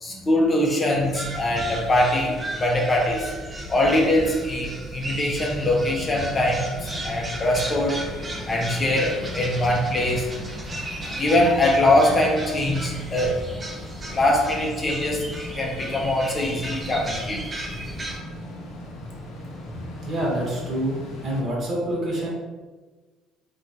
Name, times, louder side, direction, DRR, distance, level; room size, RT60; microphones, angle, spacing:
voice 1, 0.0-3.3 3.7-8.0 8.5-10.3 11.2-13.4 14.1-15.3 15.6-17.4 19.7-19.8, left 1 dB, 25° left, 0 dB, 0.4 m, -22 dB
sound 1, 1.0-18.2, right 1 dB, 25° right, 0.6 m, -35 dB
sound 2, 6.8-21.4, left 1 dB, 70° left, 0.8 m, -39 dB
voice 2, 20.0-21.0 21.2-22.3, right 1 dB, 40° right, -4 dB, 1.0 m, -26 dB
3.1 x 2.3 x 2.6 m, 1.3 s
cardioid pair, 120°, 0 cm